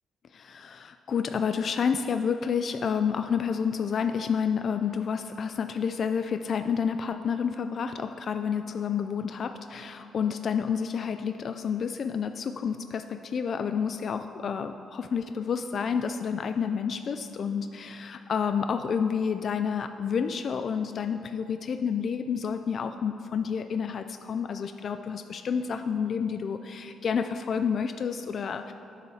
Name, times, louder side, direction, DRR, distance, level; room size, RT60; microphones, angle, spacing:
voice 1, 0.3-28.7, left 6 dB, 55° left, 8 dB, 0.3 m, -29 dB
18.5 x 7.2 x 2.8 m, 2.9 s
cardioid pair, 90°, 0 cm